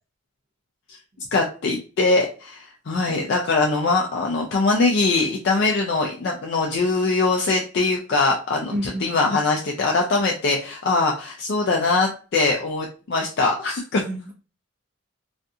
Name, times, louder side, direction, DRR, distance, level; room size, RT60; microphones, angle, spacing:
voice 1, 1.3-14.0, left 3 dB, 55° left, 0 dB, 0.4 m, -22 dB
voice 2, 8.7-9.1 14.0-14.3, equal, 40° right, -1 dB, 0.7 m, -29 dB
2.5 x 2.3 x 2.6 m, 0.36 s
head